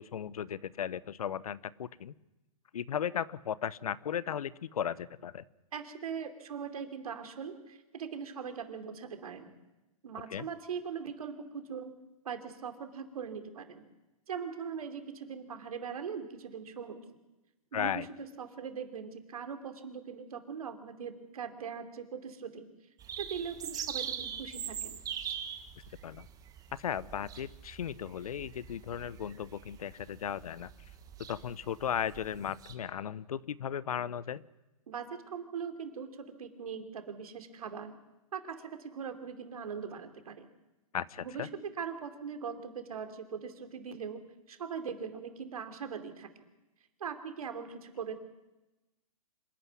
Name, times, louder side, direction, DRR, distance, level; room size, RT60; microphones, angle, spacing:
voice 1, 0.0-2.1 2.7-5.4 10.3-10.5 17.7-18.1 26.0-26.3 26.8-30.7 31.3-34.4 40.9-41.5, left 9 dB, 75° left, 20 dB, 0.8 m, -36 dB
voice 2, 5.7-9.5 10.0-11.9 12.2-13.9 14.3-17.0 17.7-22.7 23.2-25.0 34.9-38.0 38.3-40.5 41.2-41.5 41.8-44.2 44.5-46.3 47.0-48.2, right 6 dB, 75° right, 7 dB, 3.1 m, -41 dB
sound 1, 23.0-32.7, right 8 dB, 20° right, 1.6 m, -42 dB
25.5 x 12.0 x 9.6 m, 1.0 s
hypercardioid pair, 135°, 19 cm